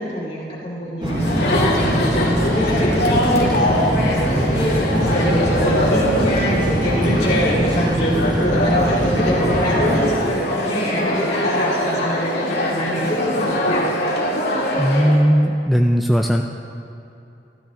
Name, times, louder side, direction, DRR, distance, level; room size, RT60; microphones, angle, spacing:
voice 1, 0.0-13.8, equal, 35° left, -7 dB, 2.0 m, -26 dB
sound 1, 1.0-10.0, right 1 dB, 25° right, 0.9 m, -22 dB
Chatter, 1.1-15.2, left 1 dB, 70° left, 2.0 m, -22 dB
voice 2, 14.8-16.4, equal, ahead, 2 dB, 0.3 m, -17 dB
15.0 x 12.5 x 3.7 m, 2.7 s
head